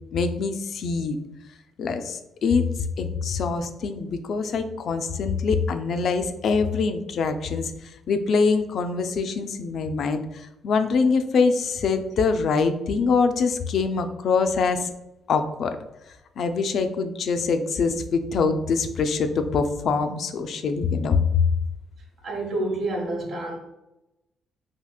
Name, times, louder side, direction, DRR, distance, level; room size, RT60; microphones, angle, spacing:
voice 1, 0.1-1.2 1.8-7.7 8.1-14.8 15.3-15.8 16.4-21.2, left 4 dB, 65° left, 8 dB, 0.3 m, -24 dB
voice 2, 22.2-23.6, right 2 dB, 65° right, 0 dB, 1.0 m, -28 dB
3.5 x 2.8 x 2.3 m, 0.93 s
cardioid pair, 90°, 0 cm